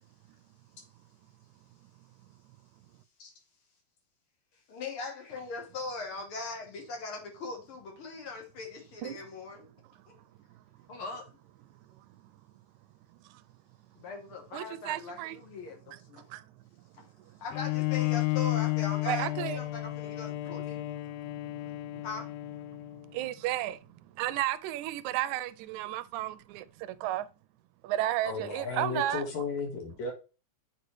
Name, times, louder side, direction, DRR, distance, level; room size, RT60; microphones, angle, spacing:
voice 1, 4.7-9.7 10.1-10.2 10.9-11.3 14.0-16.3 17.0-17.1 17.4-20.9 22.0-22.3, left 3 dB, 55° left, 1.9 m, -40 dB
voice 2, 14.5-15.4 16.3-16.4 19.1-19.6 23.1-23.8 24.2-26.7 27.0-27.3 27.8-29.3, right 13 dB, 85° right, 1.9 m, -32 dB
Bowed string instrument, 17.5-23.2, left 20 dB, 90° left, 2.0 m, -32 dB
voice 3, 28.2-30.1, left 4 dB, 70° left, 3.1 m, -34 dB
7.9 x 4.9 x 3.2 m
omnidirectional pair, 3.3 m